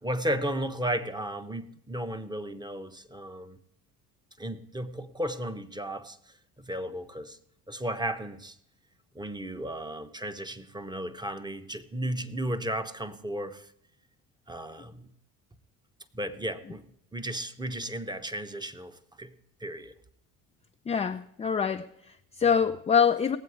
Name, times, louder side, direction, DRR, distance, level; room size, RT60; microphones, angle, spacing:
voice 1, 0.0-3.6 4.4-6.2 6.6-7.4 7.7-8.6 9.1-13.7 14.5-15.1 16.1-16.8 17.1-19.3 19.6-19.9, right 1 dB, 10° right, 0.8 m, -34 dB
voice 2, 20.9-23.4, left 7 dB, 15° left, 0.4 m, -25 dB
18.5 x 7.7 x 4.8 m
hypercardioid pair, 65°, 43 cm